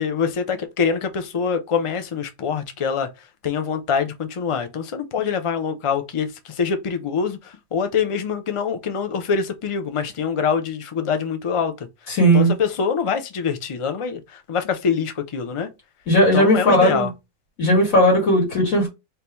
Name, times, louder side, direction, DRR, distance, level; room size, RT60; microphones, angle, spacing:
voice 1, 0.0-11.9 12.3-15.7 16.3-17.1, left 6 dB, 55° left, 0.3 m, -24 dB
voice 2, 12.1-12.5 16.1-17.1 17.6-18.9, equal, 70° left, 2.1 m, -16 dB
3.6 x 2.7 x 4.4 m
omnidirectional pair, 1.5 m